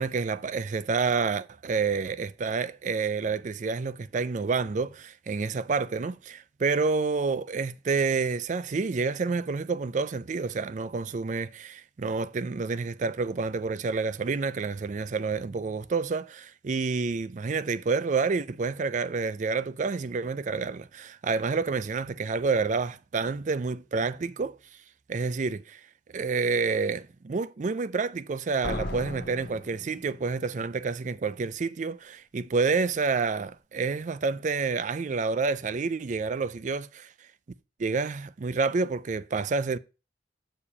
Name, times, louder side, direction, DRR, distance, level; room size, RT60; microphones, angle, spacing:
voice 1, 0.0-24.6 25.1-25.8 26.1-37.1 37.8-39.8, right 4 dB, 40° right, 0.4 m, -29 dB
Slam, 28.6-30.5, left 1 dB, 50° left, 1.8 m, -36 dB
7.0 x 4.9 x 4.8 m
head